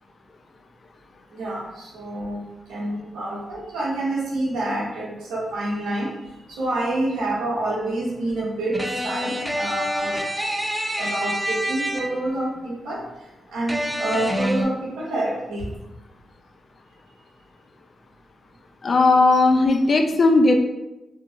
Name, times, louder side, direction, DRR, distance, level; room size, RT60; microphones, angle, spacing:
voice 1, 1.3-2.4 2.7-6.1 6.5-10.2 11.0-13.0 13.5-15.7, right 1 dB, 90° right, -5 dB, 0.9 m, -27 dB
sound 1, 8.7-12.4 13.7-14.6, equal, 10° right, 0.6 m, -27 dB
voice 2, 18.8-20.5, left 3 dB, 55° left, 3 dB, 0.3 m, -17 dB
3.7 x 2.1 x 2.8 m, 0.98 s
supercardioid pair, 45°, 0 cm